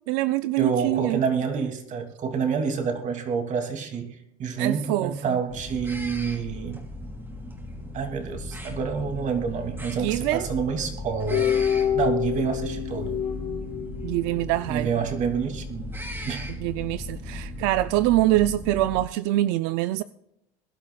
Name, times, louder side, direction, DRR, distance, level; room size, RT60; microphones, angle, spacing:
voice 1, 0.0-1.2 4.6-5.4 10.0-10.5 14.0-14.9 16.6-20.0, right 16 dB, 80° right, 0.5 m, -24 dB
voice 2, 0.6-6.8 7.9-11.5 11.9-13.2 14.7-15.9 16.2-16.5, right 6 dB, 45° right, 2.6 m, -28 dB
sound 1, 5.5-19.0, left 1 dB, 10° right, 2.9 m, -37 dB
sound 2, 11.3-14.5, left 9 dB, 75° left, 4.5 m, -27 dB
23.0 x 11.5 x 2.3 m
cardioid pair, 120°, 18 cm